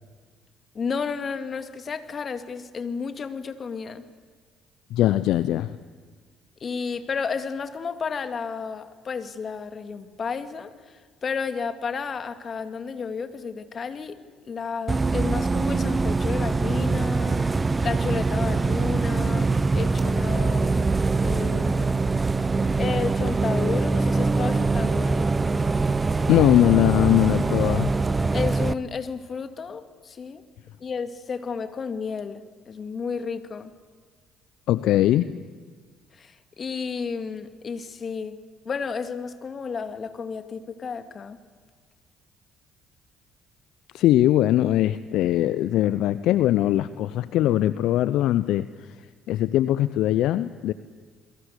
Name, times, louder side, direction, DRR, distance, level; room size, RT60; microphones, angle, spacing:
voice 1, 0.7-4.0 6.6-14.2 14.4-17.5 17.8-20.9 21.2-22.0 22.8-25.3 28.3-30.4 30.8-33.7 36.1-38.4 38.6-41.4, left 5 dB, 40° left, 9 dB, 2.3 m, -32 dB
voice 2, 4.9-5.8 26.3-27.9 34.7-35.3 43.9-48.7 49.3-50.7, left 13 dB, 65° left, 15 dB, 0.7 m, -21 dB
Bus, 14.9-28.7, right 3 dB, 25° right, 1.0 m, -23 dB
29.0 x 22.5 x 8.3 m, 1.6 s
hypercardioid pair, 55°, 0 cm